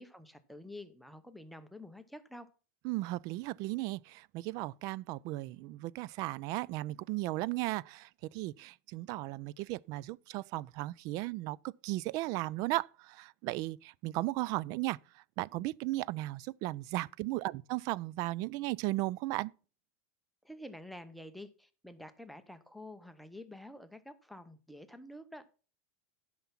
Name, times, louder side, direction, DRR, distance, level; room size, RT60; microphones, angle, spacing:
voice 1, 0.0-2.5 20.4-25.5, left 1 dB, ahead, 0.9 m, -49 dB
voice 2, 2.8-11.6 11.8-19.5, right 18 dB, 50° right, 0.3 m, -36 dB
10.5 x 5.8 x 5.8 m
supercardioid pair, 120°, 8 cm